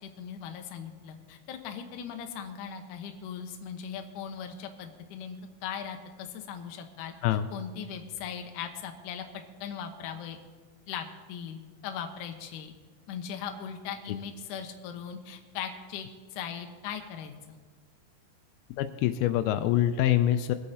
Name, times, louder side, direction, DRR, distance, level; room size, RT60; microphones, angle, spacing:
voice 1, 0.0-7.1 7.5-9.2 9.6-10.4 10.9-12.7 13.1-17.6, left 7 dB, 70° left, 5 dB, 2.2 m, -39 dB
voice 2, 18.8-20.6, left 12 dB, 85° left, 10 dB, 2.4 m, -25 dB
21.5 x 8.3 x 4.2 m, 1.4 s
omnidirectional pair, 4.4 m